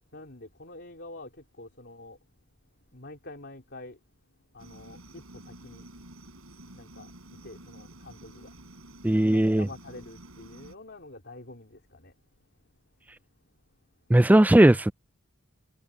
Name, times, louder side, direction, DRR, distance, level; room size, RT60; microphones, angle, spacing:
voice 1, 0.1-2.2 2.9-4.0 4.5-5.9 6.7-8.5 9.0-12.1, left 2 dB, 50° left, 3.8 m, -47 dB
sound 1, 4.6-10.7, right 1 dB, 75° right, 6.1 m, -49 dB
voice 2, 9.0-9.7 14.1-14.9, right 1 dB, 5° right, 0.3 m, -18 dB
head